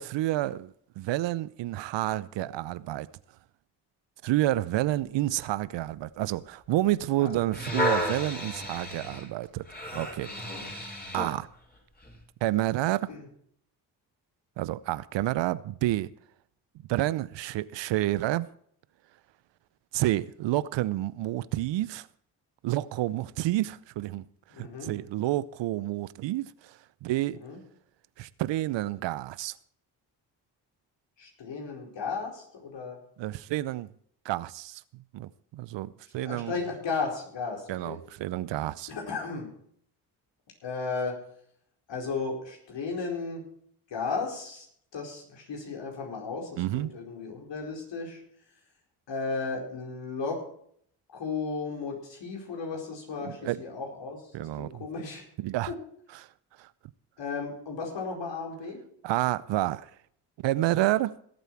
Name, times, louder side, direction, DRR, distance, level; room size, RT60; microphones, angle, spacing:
voice 1, 0.0-3.1 4.2-9.6 9.9-10.8 11.1-11.5 12.4-13.1 14.6-16.1 16.9-18.5 19.9-22.1 22.6-24.2 24.6-27.4 28.2-29.5 33.2-33.9 34.2-34.8 35.1-36.6 37.7-38.9 46.6-46.9 53.2-53.6 54.3-54.9 55.4-55.7 56.6-56.7 59.0-59.9 60.4-61.1, right 15 dB, 65° right, 0.7 m, -29 dB
sound 1, 7.3-11.4 12.0-12.2, left 1 dB, 20° left, 4.6 m, -32 dB
voice 2, 24.5-24.9 27.4-27.6 31.2-33.0 36.2-38.0 38.9-39.5 40.6-41.1 41.9-43.4 43.9-44.7 44.9-48.2 49.1-50.4 51.1-55.3 55.7-55.8 57.2-58.8, left 4 dB, 65° left, 4.6 m, -35 dB
18.0 x 8.1 x 4.6 m
hypercardioid pair, 45°, 47 cm